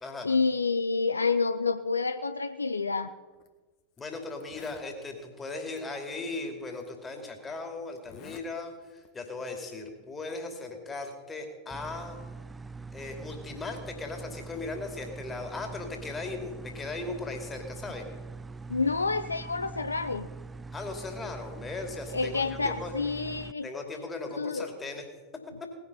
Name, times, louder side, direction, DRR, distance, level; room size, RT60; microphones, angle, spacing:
voice 1, 0.2-3.1 18.7-20.3 22.1-23.7 24.4-24.7, left 4 dB, 80° left, 12 dB, 0.5 m, -28 dB
Zipper (clothing), 3.3-3.5 4.0-4.1 4.3-4.9 5.8-5.9 6.8-6.9 8.0-8.5 8.8-9.2, left 8 dB, 40° left, 1.5 m, -51 dB
voice 2, 4.0-12.2 12.9-18.0 20.7-22.9 23.6-25.1, left 3 dB, 15° left, 4 dB, 2.8 m, -38 dB
sound 1, 11.7-23.5, right 4 dB, 10° right, 0.3 m, -43 dB
19.0 x 9.9 x 5.6 m, 1.3 s
figure-of-eight pair, 90°, 0 cm